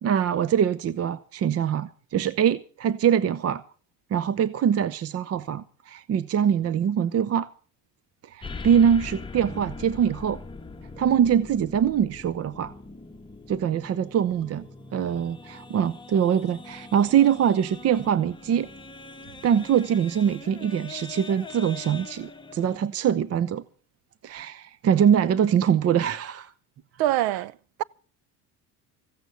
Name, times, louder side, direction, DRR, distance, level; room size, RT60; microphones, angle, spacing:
voice 1, 0.0-3.6 4.1-7.5 8.2-10.4 11.0-12.7 13.5-14.6 14.9-18.7 19.4-23.6 24.2-26.5, right 8 dB, 40° right, 0.7 m, -23 dB
sound 1, 8.4-22.8, left 3 dB, 10° left, 1.3 m, -42 dB
voice 2, 27.0-27.8, right 15 dB, 70° right, 0.7 m, -25 dB
15.5 x 9.0 x 7.9 m
supercardioid pair, 100°, 39 cm